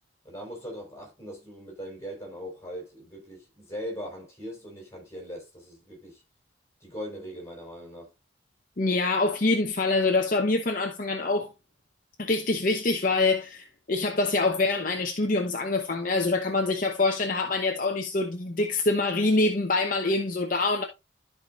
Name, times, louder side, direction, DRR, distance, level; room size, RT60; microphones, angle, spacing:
voice 1, 0.2-6.2 6.8-8.1, equal, 15° left, 4.5 m, -40 dB
voice 2, 8.8-11.5 12.2-20.8, left 3 dB, 45° left, 0.9 m, -25 dB
13.5 x 4.9 x 2.5 m
head